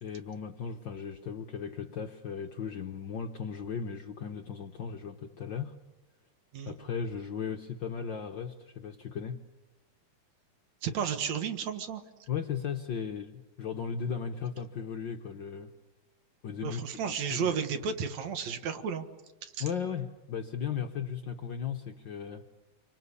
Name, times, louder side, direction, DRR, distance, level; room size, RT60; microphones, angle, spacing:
voice 1, 0.0-5.7 6.6-9.4 12.3-15.7 16.4-17.7 19.6-22.4, left 7 dB, 65° left, 5 dB, 1.1 m, -36 dB
voice 2, 10.8-12.0 16.6-19.1 19.4-19.6, right 7 dB, 65° right, 9 dB, 2.8 m, -33 dB
28.5 x 24.0 x 8.3 m, 1.1 s
omnidirectional pair, 3.5 m